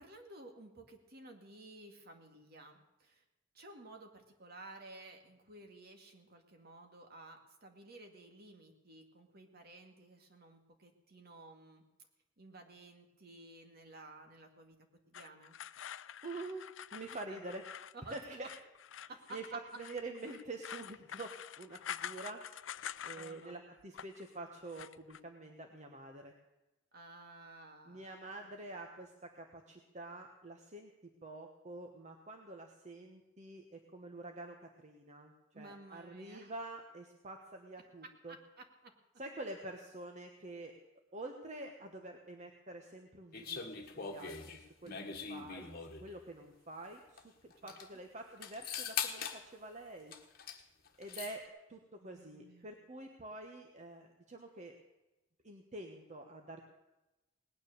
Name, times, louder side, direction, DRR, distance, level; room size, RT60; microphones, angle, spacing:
voice 1, 0.0-3.2 3.5-11.8 12.4-14.8 15.1-15.6 17.3-17.4 17.9-18.5 19.0-19.4 23.1-23.6 26.9-28.1 35.5-36.5 38.0-38.9 44.8-45.3 47.6-47.8 52.0-52.8, right 2 dB, 55° right, 4 dB, 2.1 m, -54 dB
sound 1, 15.1-23.5 23.8-24.3 24.7-25.2, left 9 dB, 75° left, 0.5 m, -47 dB
voice 2, 16.2-17.6 18.1-18.5 19.3-22.4 23.0-26.3 27.8-30.9 31.2-38.4 39.2-40.8 41.1-45.0 45.3-50.1 51.0-54.8 55.4-56.6, right 2 dB, 40° right, 3 dB, 1.2 m, -47 dB
sound 2, 43.3-46.1 47.2-47.3 47.5-47.9 48.4-49.4 50.1-50.6 50.9-51.4, left 6 dB, 50° left, 1.5 m, -41 dB
19.0 x 9.7 x 6.6 m, 1.0 s
head